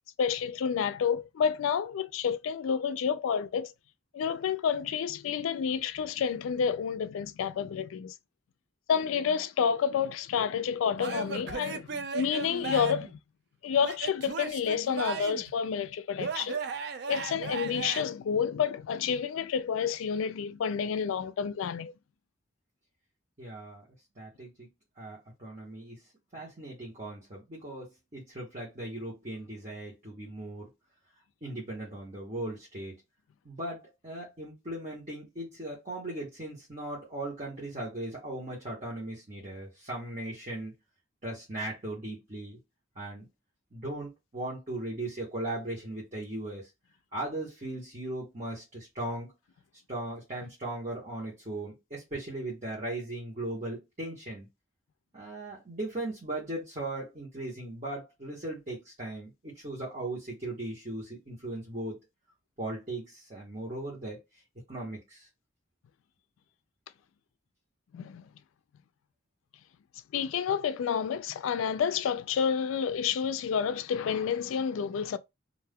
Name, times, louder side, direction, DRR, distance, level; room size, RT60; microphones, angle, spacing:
voice 1, 0.2-3.7 4.1-8.1 8.9-13.2 13.6-16.6 17.1-21.9 67.9-68.2 70.1-75.2, left 7 dB, 80° left, 0.3 m, -29 dB
Male speech man speaking / Yell / Laughter, 11.0-13.1 13.8-15.5 16.2-18.0, right 5 dB, 55° right, 0.4 m, -36 dB
voice 2, 23.4-23.9 24.2-24.7 25.0-26.0 26.3-30.7 31.4-33.0 33.4-40.7 41.2-42.6 42.9-43.3 43.7-46.7 47.1-49.3 49.9-54.5 55.1-62.0 62.6-64.2 64.7-65.3, right 1 dB, 35° right, 1.1 m, -38 dB
2.5 x 2.2 x 3.4 m
head